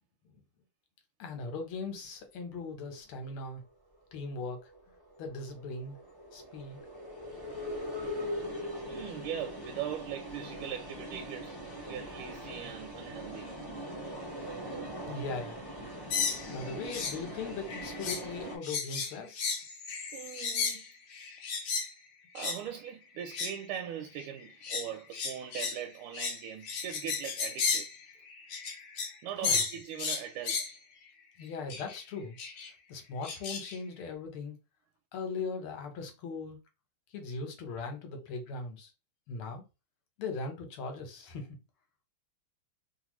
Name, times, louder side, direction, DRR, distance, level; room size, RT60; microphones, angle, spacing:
voice 1, 1.2-3.6 4.1-4.7 5.2-6.0 6.3-6.8 15.0-15.6 16.5-19.6 29.4-29.6 31.4-32.4 32.9-34.6 35.1-36.6 37.1-38.9 39.3-39.6 40.2-41.6, left 4 dB, 85° left, 1.8 m, -39 dB
sound 1, 4.5-18.6, equal, 25° left, 0.5 m, -41 dB
voice 2, 8.8-11.6 11.9-13.6 20.1-20.8 22.3-27.9 29.2-30.8, right 9 dB, 90° right, 1.5 m, -40 dB
sound 2, 16.1-17.2 17.5-18.3 18.6-21.9 22.4-22.6 23.2-23.6 24.2-29.2 29.4-30.8 31.7-32.0 32.4-32.7 33.2-33.8, left 5 dB, 65° left, 1.4 m, -34 dB
3.9 x 2.2 x 3.0 m
omnidirectional pair, 2.3 m